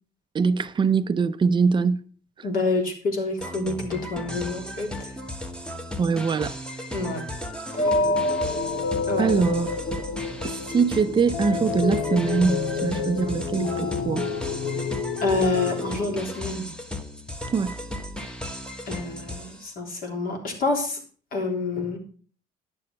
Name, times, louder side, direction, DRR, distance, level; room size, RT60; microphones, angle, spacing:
voice 1, 0.3-2.0 6.0-6.5 9.2-10.0 10.4-14.3 17.5-17.8, right 5 dB, 30° right, 0.6 m, -23 dB
voice 2, 2.4-5.1 6.9-7.2 7.8-7.9 9.1-9.3 15.2-16.7 18.9-21.0 21.3-22.0, left 3 dB, 60° left, 3.6 m, -27 dB
sound 1, 3.4-19.7, left 1 dB, 5° left, 1.2 m, -36 dB
sound 2, 7.8-16.2, left 3 dB, 80° left, 1.3 m, -28 dB
10.5 x 6.7 x 5.6 m
cardioid pair, 110°, 17 cm